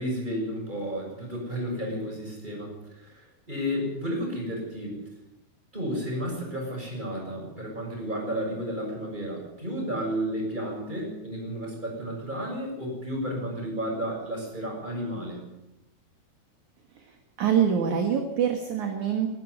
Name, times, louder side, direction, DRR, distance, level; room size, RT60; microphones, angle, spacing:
voice 1, 0.0-5.0 5.7-15.5, equal, 10° right, 0 dB, 6.9 m, -32 dB
voice 2, 17.4-19.3, right 8 dB, 55° right, 4 dB, 2.8 m, -25 dB
22.5 x 12.0 x 9.6 m, 0.95 s
omnidirectional pair, 4.7 m